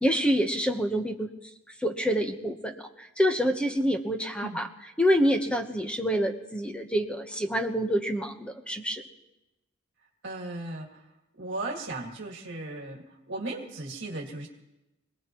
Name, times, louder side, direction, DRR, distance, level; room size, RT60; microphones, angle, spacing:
voice 1, 0.0-1.3 1.8-4.7 5.0-9.0, equal, 5° left, 5 dB, 1.0 m, -27 dB
voice 2, 10.2-11.0 11.4-14.5, right 2 dB, 55° right, 0 dB, 2.1 m, -36 dB
25.5 x 18.5 x 3.1 m, 0.97 s
head